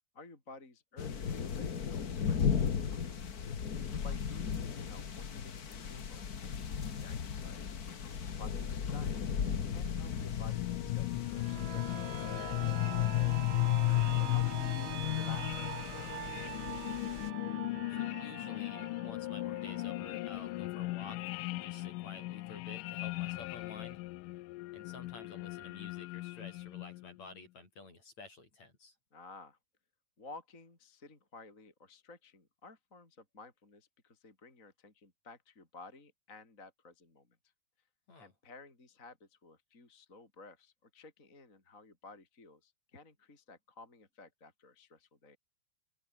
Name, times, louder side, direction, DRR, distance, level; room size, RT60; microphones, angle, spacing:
voice 1, 0.1-3.0 3.5-9.2 9.7-13.1 14.2-16.8 22.8-22.9 29.1-29.6 30.2-37.5 38.2-45.4, left 3 dB, 20° left, 4.3 m, -55 dB
sound 1, 1.0-17.3, left 7 dB, 65° left, 0.9 m, -37 dB
voice 2, 3.8-4.1 13.8-14.3 14.9-15.0 17.9-24.0 24.7-29.0 38.1-38.3, left 3 dB, 45° left, 7.8 m, -52 dB
sound 2, 8.8-27.1, left 19 dB, 80° left, 2.0 m, -36 dB
sound 3, 11.3-20.9 21.3-21.4, right 11 dB, 80° right, 3.6 m, -45 dB
open air
omnidirectional pair, 4.2 m